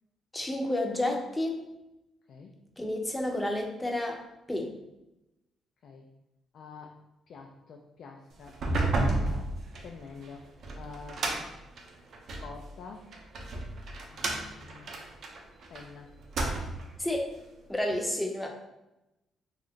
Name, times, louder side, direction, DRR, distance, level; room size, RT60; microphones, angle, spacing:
voice 1, 0.3-1.6 2.8-4.2 4.5-4.7 17.0-17.3 17.7-18.5, left 1 dB, 10° left, 2 dB, 0.6 m, -30 dB
voice 2, 6.5-7.0 7.3-9.5 9.8-11.2 12.4-13.1 14.1-14.9 15.7-16.1 17.9-18.0, left 4 dB, 65° left, 1 dB, 0.3 m, -47 dB
sound 1, 8.5-12.5 13.1-15.8 16.2-17.0, right 2 dB, 60° right, 0.5 m, -32 dB
2.6 x 2.3 x 3.6 m, 0.93 s
cardioid pair, 90°, 0 cm